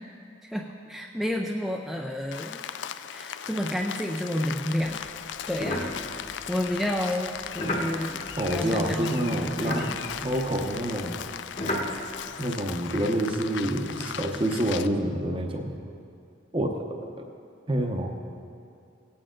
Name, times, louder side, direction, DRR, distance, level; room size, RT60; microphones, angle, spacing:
voice 1, 0.4-2.6 3.1-5.0 5.5-5.9 6.5-8.2 8.5-9.9, left 1 dB, ahead, 0 dB, 0.4 m, -30 dB
Rain, 2.3-14.9, left 9 dB, 70° left, 0.4 m, -38 dB
sound 1, 5.0-9.1 9.3-12.2, left 1 dB, 35° left, 1.3 m, -35 dB
voice 2, 8.4-9.9 10.2-11.2 12.4-15.7 16.5-16.8 17.7-18.1, right 1 dB, 25° right, 3 dB, 0.8 m, -27 dB
17.5 x 8.7 x 3.8 m, 2.5 s
head